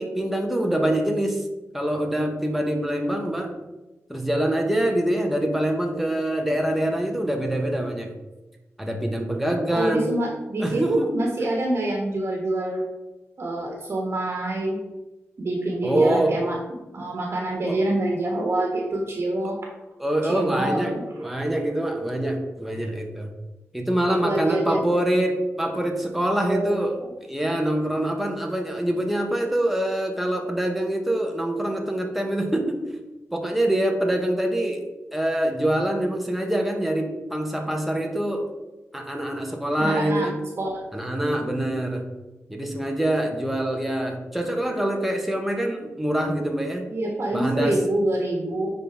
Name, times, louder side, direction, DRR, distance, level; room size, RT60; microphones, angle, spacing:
voice 1, 0.0-1.4 1.7-3.5 4.1-8.1 8.8-10.1 10.6-11.1 15.8-16.4 17.7-17.8 20.0-23.3 23.7-27.0 27.3-32.8 33.3-34.8 35.1-38.5 38.9-40.4 40.9-42.1 42.5-46.9 47.3-47.8, right 1 dB, 5° right, 2 dB, 1.0 m, -25 dB
voice 2, 9.7-12.8 13.4-14.8 15.4-16.6 16.9-19.5 20.2-21.0 24.0-24.8 26.5-27.1 39.8-40.3 40.6-40.8 46.9-48.7, right 1 dB, 55° right, -1 dB, 1.3 m, -26 dB
9.6 x 4.0 x 3.4 m, 1.1 s
wide cardioid pair, 90°, 5 cm